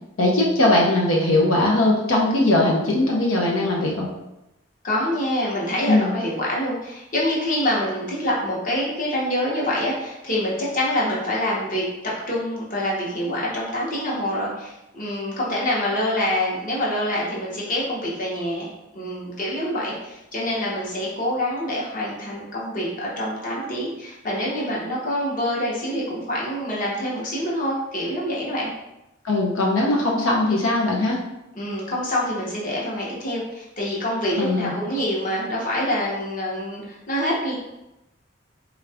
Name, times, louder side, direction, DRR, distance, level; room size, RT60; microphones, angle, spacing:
voice 1, 0.2-4.1 5.9-6.1 29.2-31.2 34.4-34.7, left 2 dB, 80° left, -2 dB, 0.7 m, -20 dB
voice 2, 4.8-18.7 18.9-28.7 31.5-37.5, left 1 dB, 40° left, -5 dB, 0.9 m, -26 dB
3.5 x 2.4 x 3.3 m, 0.93 s
head